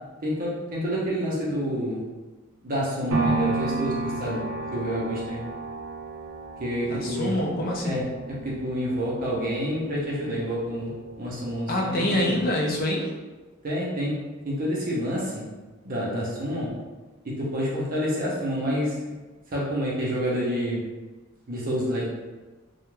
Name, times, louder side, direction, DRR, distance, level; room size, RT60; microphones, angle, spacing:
voice 1, 0.2-2.0 2.6-4.4 4.7-5.4 6.6-7.3 7.8-8.0 8.4-10.9 11.2-12.4 13.6-14.2 14.4-15.4 15.8-16.7 17.2-19.0 19.5-20.8 21.5-22.1, equal, 40° right, -5 dB, 0.5 m, -28 dB
sound 1, 3.1-11.2 11.7-11.8, right 3 dB, 85° right, 0.5 m, -32 dB
voice 2, 6.9-8.0 11.7-13.1, left 1 dB, 40° left, -1 dB, 0.4 m, -26 dB
2.3 x 2.1 x 3.0 m, 1.3 s
head